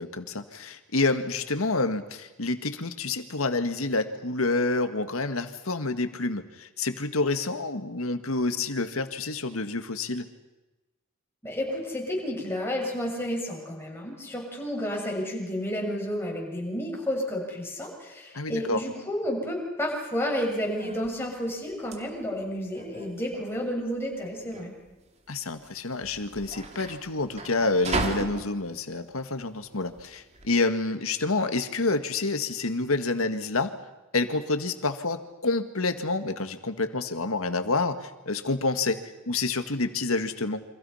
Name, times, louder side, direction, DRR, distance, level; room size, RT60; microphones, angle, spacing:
voice 1, 0.0-10.3 18.3-18.8 25.3-33.8 34.1-40.6, left 3 dB, 85° left, 9 dB, 1.8 m, -28 dB
voice 2, 11.4-24.7, equal, 10° left, -2 dB, 6.8 m, -31 dB
sound 1, 20.4-30.5, right 2 dB, 30° right, 2.6 m, -37 dB
29.0 x 26.0 x 5.8 m, 1.0 s
head